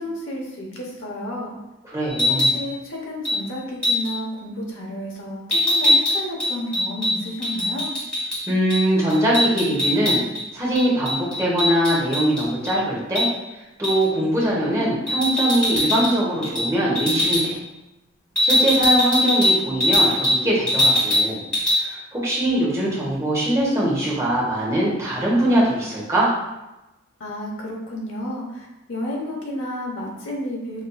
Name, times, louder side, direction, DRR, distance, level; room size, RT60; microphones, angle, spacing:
voice 1, 0.0-1.5 2.3-7.9 27.2-30.8, left 1 dB, 80° left, -2 dB, 0.9 m, -31 dB
voice 2, 1.8-2.6 8.5-10.2 10.5-13.3 13.8-17.6 18.4-21.4 21.8-26.3, right 1 dB, 15° right, -6 dB, 1.0 m, -22 dB
sound 1, 2.1-2.6 3.3-3.4 3.8-4.1 5.5-8.4 8.7-8.8 9.1-10.4 10.8-12.7 13.2-13.3 13.8-14.1 15.1-16.1 16.4-16.7 17.0-17.4 18.4-20.4 20.7-21.3 21.5-21.8, left 1 dB, 5° left, 1.3 m, -20 dB
5.3 x 2.5 x 2.3 m, 0.98 s
head